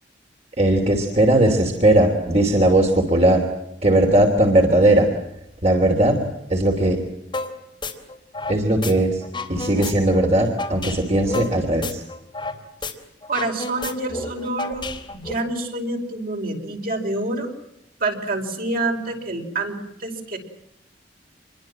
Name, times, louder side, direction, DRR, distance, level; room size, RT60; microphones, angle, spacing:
voice 1, 0.6-3.4 3.8-5.1 5.6-6.2 6.5-7.0 8.5-9.2 9.5-12.0, right 1 dB, 40° right, 2 dB, 3.1 m, -18 dB
sound 1, 7.3-7.5 7.8-8.9 9.2-12.6 12.8-12.9 13.2-15.3, left 3 dB, 25° left, 3.6 m, -30 dB
voice 2, 13.3-17.5 18.0-20.4, right 2 dB, 55° right, 2 dB, 5.4 m, -27 dB
27.5 x 22.5 x 7.6 m, 0.81 s
head